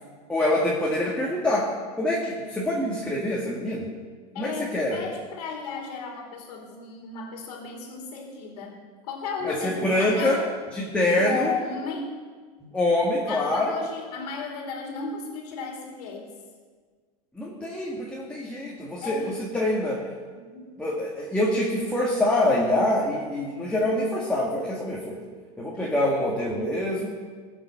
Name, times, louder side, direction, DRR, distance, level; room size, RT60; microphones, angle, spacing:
voice 1, 0.3-1.7 2.0-3.9 4.4-5.1 9.4-10.4 10.8-11.5 12.7-13.8 17.4-20.0 20.8-25.2 25.6-27.1, left 1 dB, 5° left, -5 dB, 1.9 m, -25 dB
voice 2, 4.3-8.8 9.0-10.5 11.1-12.1 13.3-16.3 19.0-19.3 20.3-20.7 25.7-25.9, left 5 dB, 80° left, 0 dB, 2.6 m, -34 dB
16.0 x 7.1 x 5.6 m, 1.5 s
supercardioid pair, 130°, 20 cm